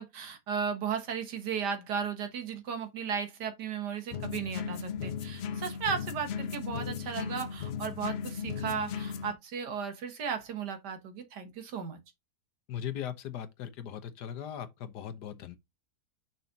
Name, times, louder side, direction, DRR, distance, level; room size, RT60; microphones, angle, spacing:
voice 1, 0.0-12.0, right 6 dB, 80° right, 1.9 m, -35 dB
sound 1, 4.1-9.3, left 7 dB, 65° left, 0.6 m, -36 dB
voice 2, 12.7-15.6, left 9 dB, 80° left, 1.5 m, -39 dB
6.1 x 4.1 x 4.0 m
omnidirectional pair, 1.7 m